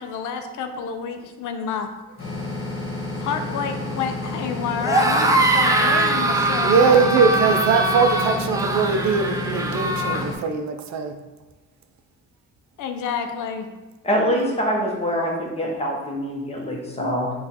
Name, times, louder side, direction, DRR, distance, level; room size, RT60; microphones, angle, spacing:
voice 1, 0.0-1.9 3.2-7.2 12.8-13.7, left 6 dB, 80° left, 6 dB, 0.5 m, -29 dB
sound 1, 2.2-10.4, left 2 dB, 45° left, 1.4 m, -30 dB
sound 2, 4.8-10.2, right 2 dB, 10° right, 0.4 m, -22 dB
voice 2, 6.6-11.2, right 5 dB, 65° right, 6 dB, 0.5 m, -20 dB
voice 3, 14.0-17.3, equal, 20° left, -1 dB, 1.1 m, -24 dB
4.2 x 2.5 x 4.1 m, 1.2 s
cardioid pair, 90°, 30 cm